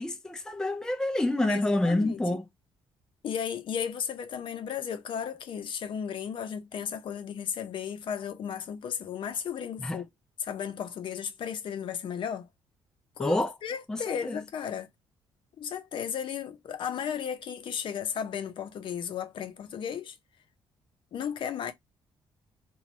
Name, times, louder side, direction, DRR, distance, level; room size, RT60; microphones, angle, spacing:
voice 1, 0.0-2.5 9.8-10.0 13.2-13.5 13.9-14.4, left 1 dB, 5° left, 0.4 m, -28 dB
voice 2, 1.5-2.3 3.2-10.1 10.4-12.5 13.2-14.9 15.6-20.2 21.1-21.7, left 8 dB, 60° left, 0.7 m, -34 dB
2.6 x 2.3 x 2.9 m
cardioid pair, 105°, 10 cm